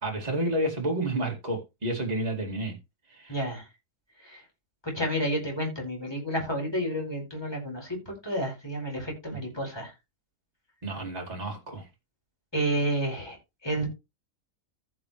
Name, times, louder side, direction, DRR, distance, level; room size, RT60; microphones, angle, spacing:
voice 1, 0.0-2.8 3.1-3.3 10.8-11.9, right 1 dB, 25° right, 2.6 m, -30 dB
voice 2, 3.3-3.7 4.2-4.4 4.8-9.9 12.5-13.4 13.6-13.9, right 1 dB, 15° left, 4.8 m, -30 dB
15.0 x 6.2 x 3.2 m
omnidirectional pair, 1.6 m